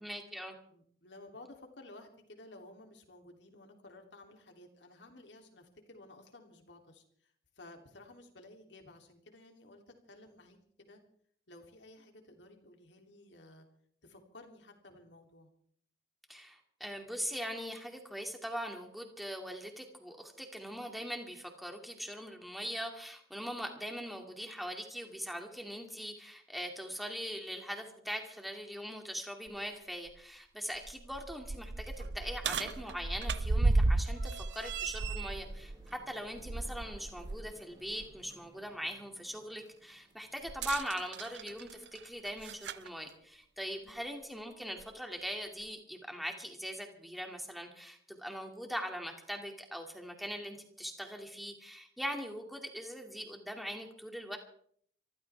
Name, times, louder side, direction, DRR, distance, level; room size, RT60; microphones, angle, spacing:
voice 1, 0.0-0.5 16.3-54.4, equal, ahead, 3 dB, 2.4 m, -41 dB
voice 2, 0.7-11.0 11.5-13.7 14.0-15.5 43.8-44.0, left 2 dB, 85° left, 3 dB, 3.1 m, -55 dB
sound 1, 29.5-29.6 30.1-30.2 30.7-37.5 37.9-38.0 40.5-42.9 43.9-44.0 44.8-44.9, right 3 dB, 75° right, 0.7 m, -34 dB
sound 2, 35.0-41.9, right 1 dB, 25° right, 6.9 m, -63 dB
25.5 x 14.5 x 3.5 m, 0.62 s
head